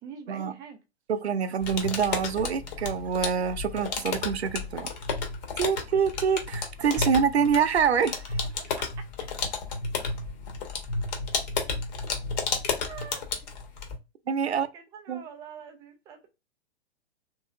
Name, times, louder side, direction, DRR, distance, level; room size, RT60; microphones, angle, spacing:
voice 1, 0.0-0.8 8.6-8.9 12.8-13.2 14.4-16.3, right 6 dB, 10° right, 0.3 m, -44 dB
voice 2, 1.1-4.9 5.6-8.4 14.3-14.7 15.1-15.2, right 7 dB, 80° right, 0.6 m, -26 dB
sound 1, 1.6-14.0, left 4 dB, 40° left, 0.9 m, -32 dB
3.1 x 3.0 x 2.3 m
figure-of-eight pair, 110°, 32 cm